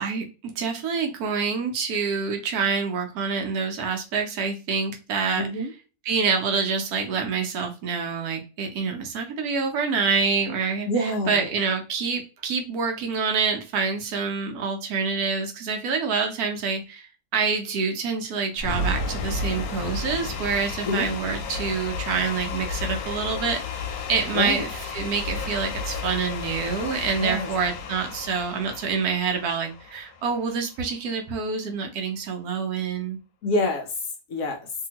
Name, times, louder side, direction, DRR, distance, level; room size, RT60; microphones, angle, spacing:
voice 1, 0.0-5.5 6.1-17.1 17.3-33.2, right 5 dB, 70° right, 4 dB, 1.1 m, -27 dB
voice 2, 5.4-5.7 10.9-11.4 20.8-21.1 24.3-24.7 27.2-27.5 33.4-34.7, left 1 dB, 65° left, 3 dB, 0.9 m, -26 dB
sound 1, 18.6-30.7, left 3 dB, 90° left, 1.2 m, -32 dB
2.8 x 2.7 x 2.8 m, 0.32 s
omnidirectional pair, 1.7 m